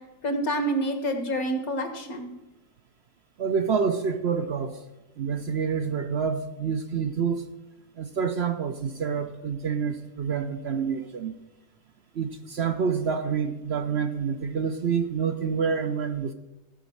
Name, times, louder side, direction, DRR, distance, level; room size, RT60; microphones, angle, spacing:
voice 1, 0.2-2.3, right 1 dB, 75° left, 6 dB, 1.9 m, -27 dB
voice 2, 3.4-4.8 5.2-7.5 8.0-11.3 12.1-16.3, right 6 dB, 55° right, 7 dB, 0.8 m, -27 dB
15.5 x 5.2 x 7.1 m, 1.0 s
omnidirectional pair, 1.5 m